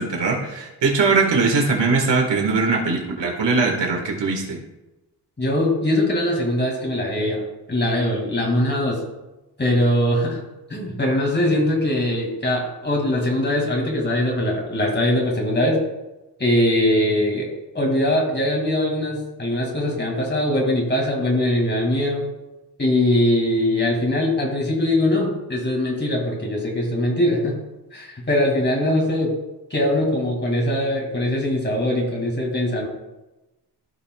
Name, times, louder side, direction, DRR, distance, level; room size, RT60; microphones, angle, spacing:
voice 1, 0.0-4.6, right 4 dB, 90° right, 1 dB, 1.8 m, -21 dB
voice 2, 5.4-7.4 7.7-9.0 9.6-10.4 10.7-15.8 16.4-17.5 17.7-22.2 22.8-27.5 27.9-29.3 29.7-32.9, left 1 dB, 25° left, -1 dB, 2.3 m, -21 dB
15.0 x 5.4 x 2.4 m, 1.0 s
wide cardioid pair, 125°, 41 cm